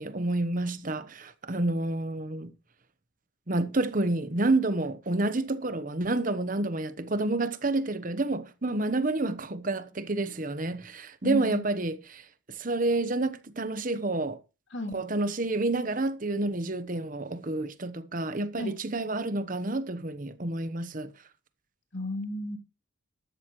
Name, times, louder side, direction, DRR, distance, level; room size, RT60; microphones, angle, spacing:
voice 1, 0.0-2.5 3.5-14.4 14.9-21.1, right 2 dB, 40° right, 1.0 m, -29 dB
voice 2, 11.2-11.6 14.7-15.0 18.6-18.7 21.9-22.6, equal, 65° left, 2.4 m, -33 dB
13.0 x 12.5 x 3.2 m
head